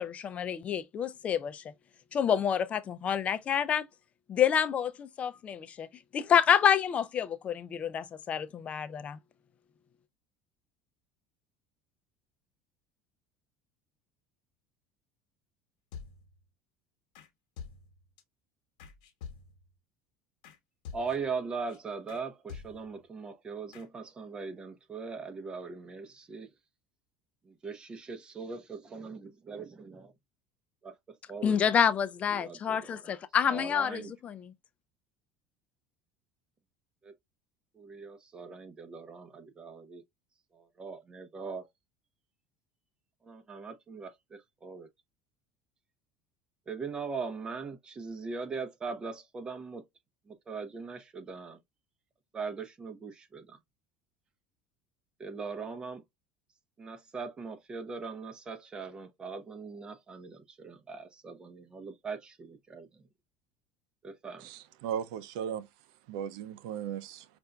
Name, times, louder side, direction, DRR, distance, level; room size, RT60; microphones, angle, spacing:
voice 1, 0.0-1.6 2.1-3.9 4.3-5.9 6.1-9.2 31.4-34.5, left 8 dB, 35° left, 0.4 m, -28 dB
sound 1, 15.9-16.4 17.1-17.3 17.6-18.2 18.8-19.7 20.4-20.6 20.8-21.4 21.7-21.8 22.1-22.2 22.5-23.0 23.7-23.9, left 6 dB, 85° left, 1.1 m, -47 dB
voice 2, 20.9-26.5 27.4-30.1 30.8-31.6 32.3-33.2 33.5-34.1 37.0-37.1 37.7-40.0 40.5-41.7 43.2-44.9 46.7-49.8 50.3-51.6 52.3-53.6 55.2-56.0 56.8-63.1 64.0-64.5, right 4 dB, 25° right, 0.9 m, -40 dB
voice 3, 64.4-65.7 66.1-67.3, right 9 dB, 80° right, 0.5 m, -36 dB
5.4 x 2.5 x 2.2 m
supercardioid pair, 120°, 4 cm